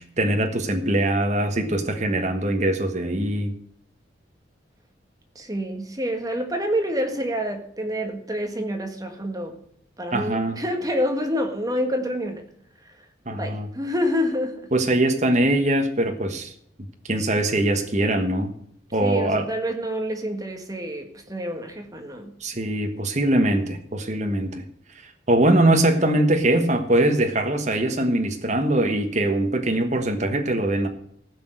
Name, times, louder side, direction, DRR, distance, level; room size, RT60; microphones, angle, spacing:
voice 1, 0.0-3.5 10.1-10.6 13.3-13.7 14.7-16.5 17.0-18.5 18.9-19.4 22.4-24.6 24.9-30.9, right 1 dB, 35° right, 5 dB, 1.4 m, -22 dB
voice 2, 5.3-9.6 10.0-12.4 13.3-14.7 19.0-22.3, equal, 20° right, 5 dB, 1.6 m, -27 dB
15.0 x 6.2 x 7.8 m, 0.68 s
head